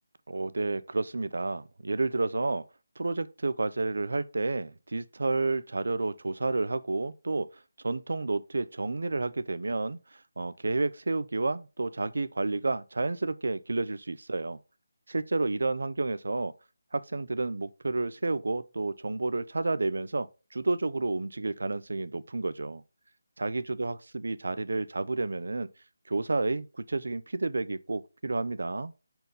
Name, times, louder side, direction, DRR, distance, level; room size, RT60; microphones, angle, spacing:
voice 1, 0.3-2.6 3.0-7.5 7.8-14.6 15.1-16.5 16.9-22.8 23.4-25.7 26.1-28.9, right 3 dB, 65° right, 0.5 m, -30 dB
5.2 x 4.5 x 5.3 m
figure-of-eight pair, 155°, 0 cm